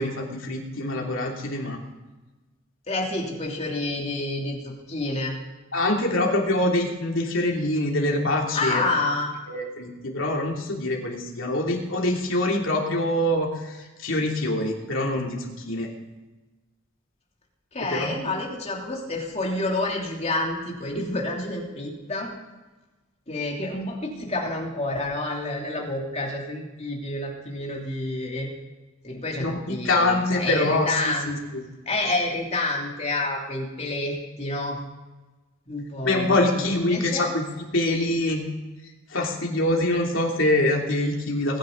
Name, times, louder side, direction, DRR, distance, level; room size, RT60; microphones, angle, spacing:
voice 1, 0.0-1.8 5.7-8.9 9.5-15.9 17.8-18.2 29.4-29.6 29.8-31.6 36.0-37.4 37.7-38.4 39.1-41.6, left 1 dB, 70° left, 0 dB, 3.0 m, -25 dB
voice 2, 2.9-5.4 8.5-9.3 17.7-22.3 23.3-28.5 29.0-31.4 31.9-34.8 35.7-37.3, left 2 dB, 35° left, -1 dB, 3.1 m, -29 dB
22.0 x 10.0 x 4.0 m, 1.2 s
head